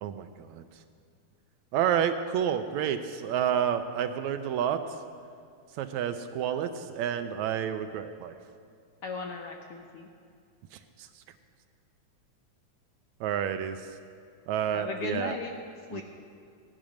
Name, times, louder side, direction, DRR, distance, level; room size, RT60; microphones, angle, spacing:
voice 1, 0.0-0.6 1.7-4.8 5.8-8.4 11.0-11.1 13.2-13.8 14.5-15.4 15.9-16.0, right 9 dB, 80° right, 8 dB, 1.8 m, -29 dB
voice 2, 9.0-10.1 14.7-15.5 15.9-16.0, left 4 dB, 70° left, 2 dB, 1.4 m, -36 dB
17.0 x 10.5 x 6.3 m, 2.3 s
omnidirectional pair, 3.5 m